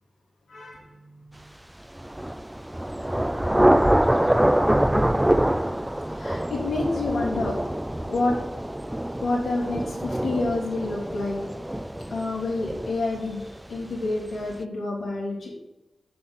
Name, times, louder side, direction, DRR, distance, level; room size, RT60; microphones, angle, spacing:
voice 1, 0.5-1.3 6.1-7.6 8.0-8.4 9.2-11.4 12.1-15.5, left 2 dB, 85° left, -4 dB, 3.3 m, -28 dB
Thunder / Rain, 2.0-13.6, right 1 dB, 10° right, 0.4 m, -25 dB
7.5 x 6.9 x 4.1 m, 0.92 s
cardioid pair, 60°, 0 cm